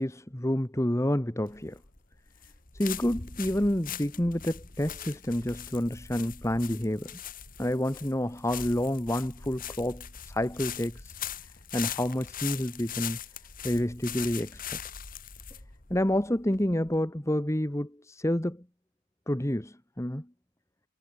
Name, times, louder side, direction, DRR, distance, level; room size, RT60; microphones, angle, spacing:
voice 1, 0.0-1.8 2.7-7.2 7.6-11.2 11.7-13.2 13.6-14.8 15.9-18.6 19.3-20.3, left 1 dB, 15° left, 1.4 m, -29 dB
sound 1, 1.5-17.0, left 9 dB, 45° left, 2.3 m, -41 dB
head